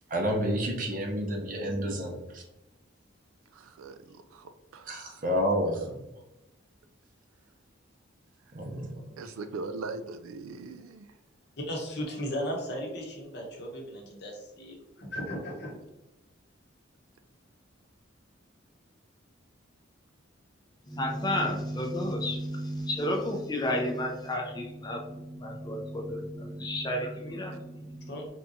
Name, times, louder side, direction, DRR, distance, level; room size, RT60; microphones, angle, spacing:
voice 1, 0.1-2.4 4.9-6.0 8.5-9.1, equal, 40° right, 1 dB, 0.6 m, -30 dB
voice 2, 3.5-5.2 9.2-11.1 26.2-26.3, right 3 dB, 90° right, 9 dB, 0.3 m, -41 dB
voice 3, 11.7-15.8 28.1-28.3, equal, 55° left, 0 dB, 0.8 m, -36 dB
voice 4, 20.9-28.3, left 1 dB, 20° left, 1 dB, 0.4 m, -32 dB
3.5 x 2.8 x 2.6 m, 0.95 s
head